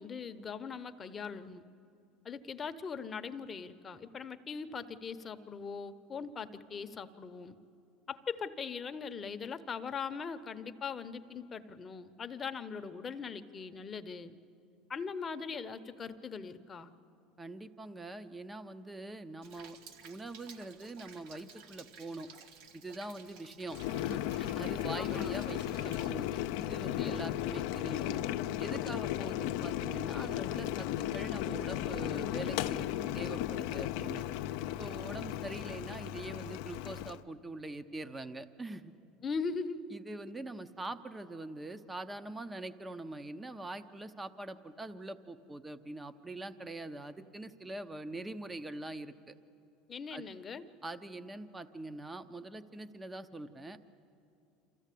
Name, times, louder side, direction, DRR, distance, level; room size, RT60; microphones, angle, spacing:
voice 1, 0.0-1.6 2.2-7.6 8.1-14.3 14.9-16.9 24.9-25.3 27.0-27.3 39.2-39.8 49.9-50.6, left 5 dB, 30° left, 9 dB, 0.9 m, -40 dB
voice 2, 17.4-19.8 20.0-22.3 22.7-28.2 28.6-34.2 34.8-38.9 39.9-49.3 50.1-50.2 50.8-53.8, right 2 dB, 15° right, 12 dB, 0.9 m, -43 dB
Rain, 19.4-26.1, right 6 dB, 75° right, 1.3 m, -54 dB
Boiling, 23.7-37.2, left 13 dB, 75° left, 0.6 m, -35 dB
26.5 x 14.5 x 8.5 m, 2.6 s
supercardioid pair, 110°, 0 cm